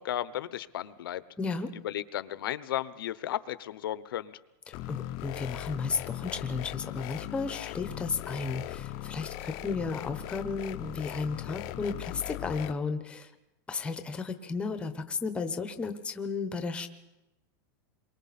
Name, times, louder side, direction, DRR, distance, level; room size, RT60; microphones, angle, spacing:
voice 1, 0.0-1.2 1.8-4.4, left 12 dB, 85° left, 15 dB, 1.0 m, -34 dB
voice 2, 1.4-1.7 4.7-13.3 13.7-16.9, left 4 dB, 10° left, 8 dB, 1.0 m, -34 dB
sound 1, 4.7-12.7, left 15 dB, 35° left, 0.7 m, -39 dB
29.0 x 23.0 x 4.2 m, 0.99 s
supercardioid pair, 170°, 12 cm